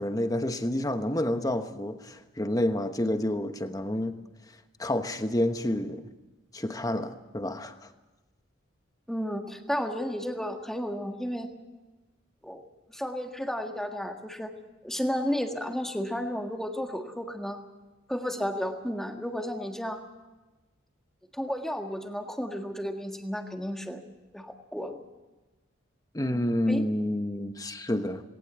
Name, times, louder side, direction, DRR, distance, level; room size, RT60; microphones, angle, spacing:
voice 1, 0.0-4.2 4.8-6.1 6.5-7.9 26.1-28.2, left 1 dB, 15° left, 8 dB, 1.1 m, -29 dB
voice 2, 9.1-11.5 12.4-12.6 12.9-14.5 14.8-17.6 18.1-20.0 21.3-24.0 24.3-25.0 26.3-26.8, equal, ahead, 4 dB, 1.6 m, -32 dB
19.0 x 18.5 x 8.1 m, 1.1 s
head